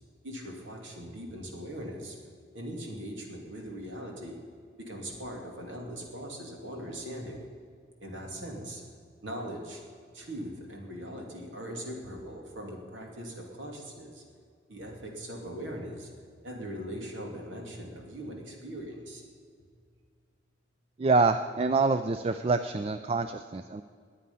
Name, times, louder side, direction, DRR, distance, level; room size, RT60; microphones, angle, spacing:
voice 1, 0.2-2.2 2.5-4.4 4.9-7.4 8.0-8.8 9.2-9.8 10.1-14.2 14.7-16.1 16.4-19.2, equal, 80° right, 0 dB, 2.8 m, -40 dB
voice 2, 21.0-23.8, right 3 dB, 30° right, 10 dB, 0.3 m, -26 dB
20.5 x 8.6 x 5.6 m, 2.1 s
head